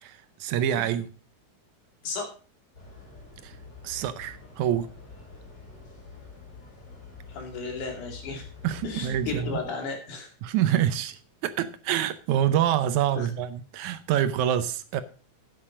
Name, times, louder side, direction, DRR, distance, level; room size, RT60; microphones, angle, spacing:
voice 1, 0.0-1.1 3.4-3.6 3.8-4.9 8.6-9.6 10.4-15.0, right 10 dB, 75° right, 2.0 m, -26 dB
sound 1, 2.7-9.7, left 4 dB, 35° left, 4.8 m, -46 dB
voice 2, 7.3-8.4 8.8-10.3 13.1-13.3, left 4 dB, 75° left, 4.0 m, -34 dB
9.5 x 8.5 x 5.0 m
omnidirectional pair, 3.6 m